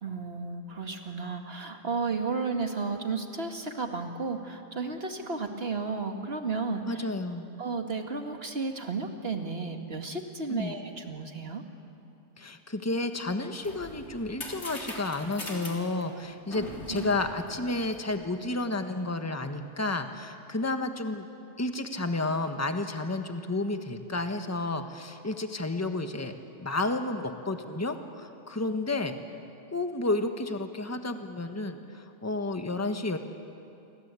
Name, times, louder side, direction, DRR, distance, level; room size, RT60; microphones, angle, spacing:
voice 1, 0.0-7.1 7.6-11.6 16.5-17.1, right 4 dB, 50° right, 4 dB, 2.2 m, -33 dB
voice 2, 6.8-7.5 10.5-10.7 12.4-21.3 21.6-26.3 26.6-29.1 29.7-33.2, left 2 dB, 10° left, 7 dB, 1.3 m, -31 dB
sound 1, 13.4-18.3, left 2 dB, 60° left, 3.8 m, -42 dB
28.5 x 24.5 x 8.4 m, 2.7 s
omnidirectional pair, 1.3 m